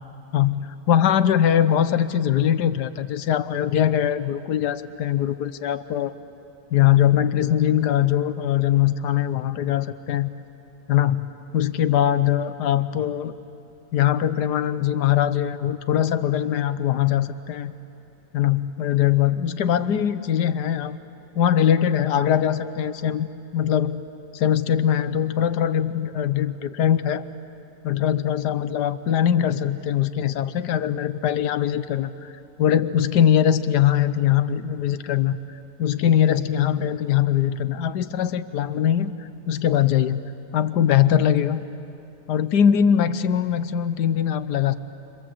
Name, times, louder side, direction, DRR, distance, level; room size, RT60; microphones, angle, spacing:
voice 1, 0.3-6.2 6.7-10.3 10.9-13.4 13.9-17.7 18.3-21.0 21.3-23.3 23.5-24.0 24.3-27.2 27.8-32.3 32.6-35.4 35.8-40.2 40.5-41.6 42.3-44.7, left 10 dB, 85° left, 12 dB, 1.4 m, -21 dB
28.5 x 26.5 x 7.7 m, 2.8 s
omnidirectional pair, 1.7 m